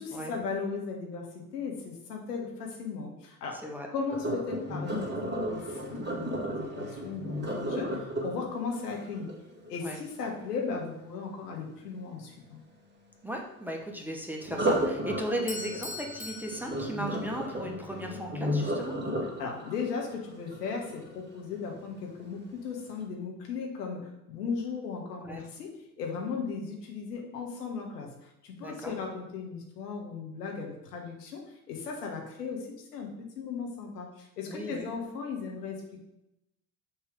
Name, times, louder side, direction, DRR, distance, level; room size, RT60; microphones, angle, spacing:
voice 1, 0.0-3.6 3.9-9.3 9.7-12.6 19.4-33.1 33.4-36.0, left 5 dB, 85° left, 1 dB, 1.4 m, -37 dB
Sink (filling or washing), 4.1-10.1 14.4-21.5 22.0-22.3 22.8-22.9, equal, 20° right, 2.0 m, -33 dB
voice 2, 13.2-18.9 25.2-25.4 28.6-28.9 34.5-34.9, equal, 5° right, 1 dB, 1.0 m, -36 dB
Bell / Doorbell, 15.5-17.6, left 3 dB, 15° left, 0.7 m, -42 dB
6.0 x 3.4 x 5.1 m, 0.87 s
hypercardioid pair, 70°, 46 cm